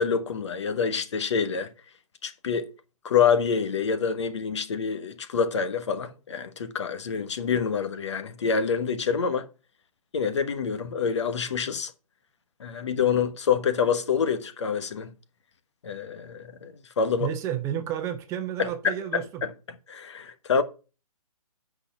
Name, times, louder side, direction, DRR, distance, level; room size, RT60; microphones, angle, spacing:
voice 1, 0.0-1.7 2.2-2.7 3.0-9.5 10.1-11.9 12.6-15.1 15.8-17.3 18.6-18.7 19.9-20.6, left 6 dB, 50° left, 1.3 m, -26 dB
voice 2, 17.2-19.4, right 10 dB, 15° right, 0.9 m, -31 dB
8.1 x 6.1 x 7.1 m
figure-of-eight pair, 140°, 19 cm